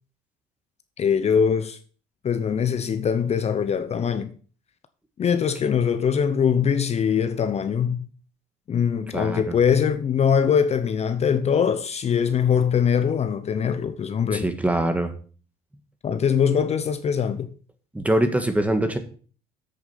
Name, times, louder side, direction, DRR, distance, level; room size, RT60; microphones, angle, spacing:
voice 1, 1.0-1.8 2.2-4.3 5.2-8.1 8.7-14.5 16.0-17.5, left 7 dB, 40° left, 0.7 m, -22 dB
voice 2, 9.1-9.5 14.3-15.1 17.9-19.0, right 1 dB, 10° right, 1.5 m, -23 dB
8.3 x 6.7 x 5.7 m
cardioid pair, 110°, 17 cm